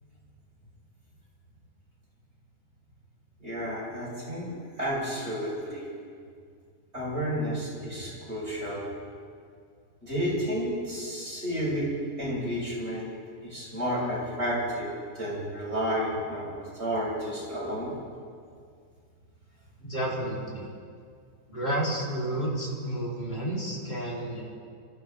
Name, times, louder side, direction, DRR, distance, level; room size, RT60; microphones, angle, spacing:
voice 1, 3.4-4.5 4.8-5.9 6.9-8.9 10.0-11.9 12.2-13.1 13.4-17.9, equal, 45° right, -6 dB, 5.5 m, -31 dB
voice 2, 19.8-20.7 21.5-24.4, right 1 dB, 30° left, -6 dB, 4.1 m, -31 dB
26.5 x 14.0 x 3.7 m, 2.2 s
omnidirectional pair, 1.5 m